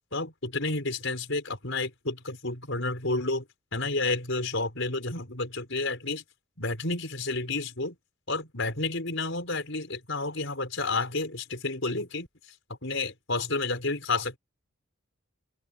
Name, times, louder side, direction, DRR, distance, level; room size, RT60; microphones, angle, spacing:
voice 1, 0.1-3.5 3.7-6.2 6.6-8.0 8.3-12.5 12.8-14.4, left 3 dB, 60° left, 5.7 m, -30 dB
open air
head